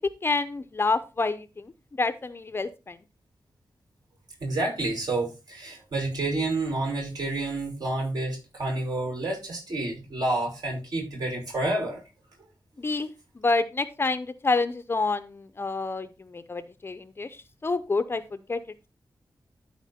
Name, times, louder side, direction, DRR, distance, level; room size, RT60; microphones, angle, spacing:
voice 1, 0.2-3.0 12.8-13.1 13.4-17.3 17.6-18.6, left 3 dB, 30° left, 12 dB, 0.6 m, -28 dB
voice 2, 4.4-12.0, right 2 dB, 60° right, 0 dB, 5.9 m, -29 dB
13.0 x 4.5 x 4.2 m, 0.28 s
wide cardioid pair, 175°, 8 cm